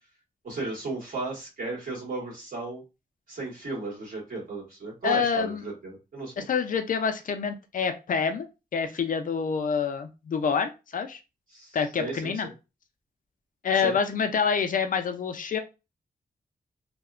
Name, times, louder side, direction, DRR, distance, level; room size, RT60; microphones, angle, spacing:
voice 1, 0.4-2.8 3.3-6.4 11.5-12.5 13.7-14.0, right 3 dB, 55° right, -3 dB, 1.6 m, -35 dB
voice 2, 5.0-5.6 6.4-8.5 8.7-11.2 11.7-12.5 13.6-15.6, left 6 dB, 55° left, 8 dB, 0.4 m, -27 dB
2.7 x 2.1 x 2.4 m, 0.27 s
wide cardioid pair, 160°, 17 cm